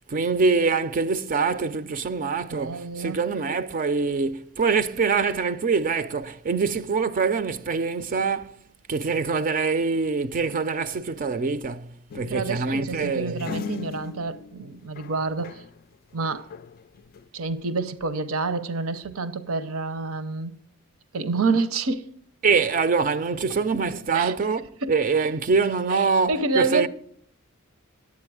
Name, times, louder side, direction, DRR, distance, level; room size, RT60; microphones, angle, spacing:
voice 1, 0.1-8.6 8.9-13.6 22.4-26.9, right 4 dB, 40° right, 0.4 m, -24 dB
voice 2, 2.5-3.2 12.3-15.6 16.1-16.5 17.3-20.5 21.1-22.1 24.1-24.3 24.8-24.9 25.9-26.9, right 3 dB, 75° right, 0.7 m, -28 dB
sound 1, 12.1-15.8 16.1-17.3, left 6 dB, 45° left, 0.3 m, -39 dB
9.7 x 8.3 x 4.7 m
head